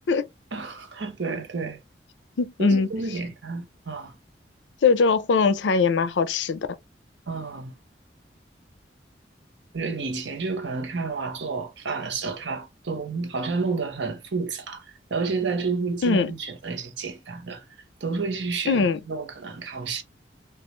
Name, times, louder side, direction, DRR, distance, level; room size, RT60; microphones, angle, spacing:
voice 1, 0.5-1.8 2.6-4.2 7.3-7.7 9.7-17.6 18.0-20.0, right 4 dB, 85° right, 0.8 m, -30 dB
voice 2, 2.4-2.9 4.8-6.6 16.0-16.3 18.7-19.0, left 4 dB, 85° left, 0.4 m, -21 dB
3.2 x 2.4 x 2.9 m
head